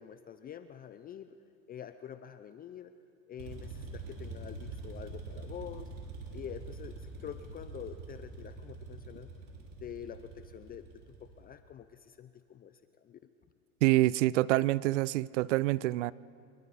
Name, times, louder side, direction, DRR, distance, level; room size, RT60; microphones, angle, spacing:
voice 1, 0.0-1.4 1.7-2.9 3.3-5.9 6.3-9.3 9.8-13.2, left 9 dB, 25° left, 0.6 m, -46 dB
sound 1, 3.4-11.5, right 3 dB, 65° right, 5.0 m, -45 dB
voice 2, 13.8-16.1, right 17 dB, 85° right, 0.5 m, -26 dB
26.0 x 23.5 x 4.2 m
supercardioid pair, 115°, 35 cm